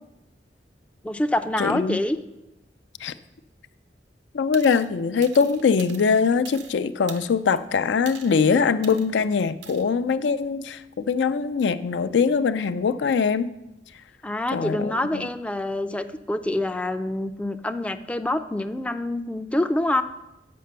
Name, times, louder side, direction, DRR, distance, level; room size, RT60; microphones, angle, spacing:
voice 1, 1.0-2.2 14.2-20.0, left 1 dB, 5° left, 9 dB, 0.3 m, -26 dB
voice 2, 1.6-2.0 3.0-3.1 4.3-13.5 14.5-15.3, left 5 dB, 85° left, 12 dB, 0.4 m, -22 dB
sound 1, 4.5-4.9 5.2-6.7 7.1-7.6 8.1-8.4 8.8-9.1 9.6-9.8, right 8 dB, 90° right, 0.7 m, -43 dB
7.6 x 5.1 x 6.7 m, 0.93 s
head